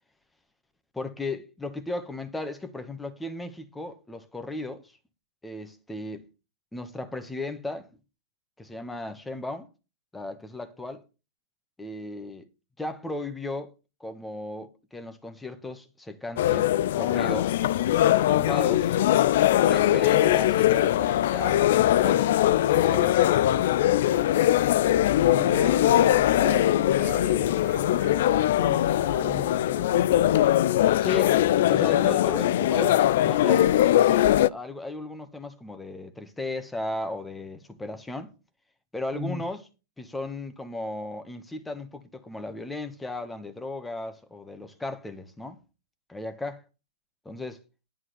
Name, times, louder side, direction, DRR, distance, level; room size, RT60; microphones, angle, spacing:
voice 1, 0.9-5.0 5.4-6.3 6.7-7.9 8.6-9.7 10.1-11.0 11.8-12.5 12.8-13.7 14.0-17.7 18.3-18.9 19.6-23.7 31.0-38.3 38.9-39.6 40.0-45.6 46.1-46.6 47.2-47.6, left 2 dB, 5° left, 1.6 m, -36 dB
sound 1, 16.4-34.5, left 12 dB, 55° left, 0.5 m, -21 dB
voice 2, 25.2-30.1 39.1-39.4, right 2 dB, 25° right, 2.3 m, -38 dB
11.0 x 4.8 x 7.9 m
hypercardioid pair, 115°, 0 cm